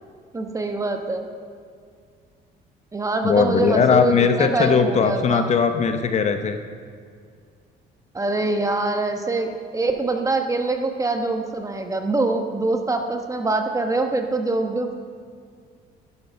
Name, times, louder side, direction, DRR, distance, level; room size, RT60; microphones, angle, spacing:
voice 1, 0.3-1.3 2.9-5.5 8.1-14.9, right 2 dB, 20° right, 5 dB, 1.2 m, -24 dB
voice 2, 3.2-6.6, left 6 dB, 40° left, 7 dB, 0.9 m, -19 dB
11.5 x 11.5 x 5.4 m, 2.2 s
cardioid pair, 110°, 17 cm